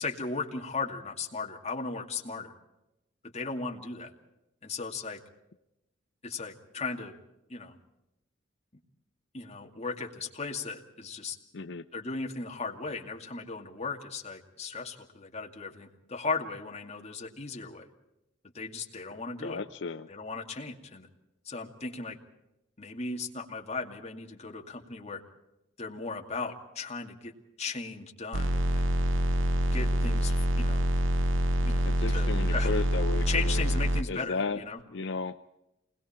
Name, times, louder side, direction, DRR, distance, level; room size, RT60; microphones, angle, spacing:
voice 1, 0.0-2.5 3.2-4.1 4.6-5.2 6.2-7.2 7.5-7.8 9.3-11.4 11.9-17.9 18.5-19.6 20.1-21.1 21.4-22.2 22.8-25.2 25.8-27.3 27.6-28.8 29.7-30.9 31.6-32.7 33.3-34.8, left 4 dB, 35° left, 1 dB, 2.4 m, -37 dB
voice 2, 11.5-11.8 19.4-20.1 31.9-33.8 34.1-34.6 34.9-35.4, left 4 dB, 65° left, 8 dB, 0.6 m, -34 dB
sound 1, 28.3-34.0, equal, 90° right, 0.9 m, -26 dB
28.0 x 21.0 x 4.4 m, 0.91 s
head